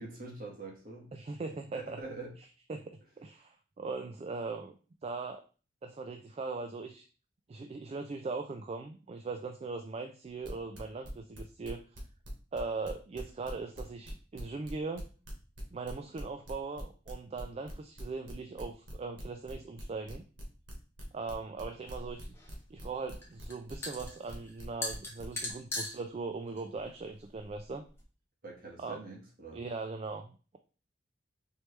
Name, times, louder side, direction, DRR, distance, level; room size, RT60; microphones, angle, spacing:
voice 1, 0.0-1.1 1.7-2.3 28.4-29.6, right 3 dB, 50° right, -2 dB, 1.5 m, -44 dB
voice 2, 1.1-2.0 2.7-4.7 5.0-5.4 5.8-7.1 7.5-12.0 12.5-15.1 15.7-20.2 21.1-22.4 22.7-27.8 28.8-29.0 29.5-30.6, right 4 dB, 35° right, 6 dB, 0.3 m, -40 dB
sound 1, 10.4-12.6 12.8-25.5, equal, 85° right, 1.5 m, -47 dB
sound 2, 21.9-28.0, left 1 dB, 15° left, 1.1 m, -42 dB
4.5 x 3.1 x 3.2 m, 0.36 s
head